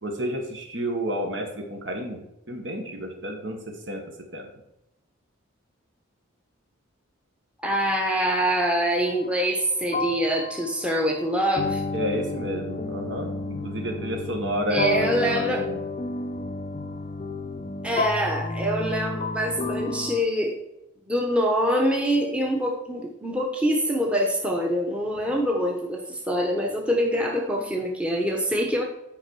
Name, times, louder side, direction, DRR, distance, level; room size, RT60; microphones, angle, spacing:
voice 1, 0.0-4.0 4.3-4.5 11.9-15.8, equal, 60° right, 3 dB, 1.6 m, -31 dB
voice 2, 7.6-11.8 14.7-15.7 17.8-20.6 21.1-28.8, equal, 5° right, 0 dB, 1.0 m, -25 dB
sound 1, 9.1-9.3 9.9-20.2, left 3 dB, 35° left, 0.6 m, -31 dB
9.7 x 5.3 x 4.8 m, 0.89 s
head